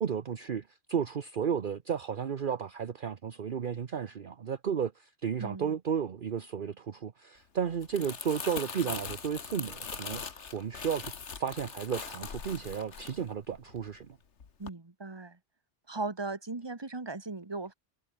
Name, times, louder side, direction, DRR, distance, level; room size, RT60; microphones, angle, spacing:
voice 1, 0.0-10.2 10.5-11.1 11.4-14.1, right 7 dB, 50° right, 1.0 m, -33 dB
voice 2, 5.4-5.8 14.6-15.4 15.9-17.7, right 3 dB, 25° right, 1.5 m, -38 dB
Crumpling crinkling, 7.7-14.0 14.4-14.7, left 6 dB, 90° left, 1.8 m, -41 dB
omnidirectional pair, 1.1 m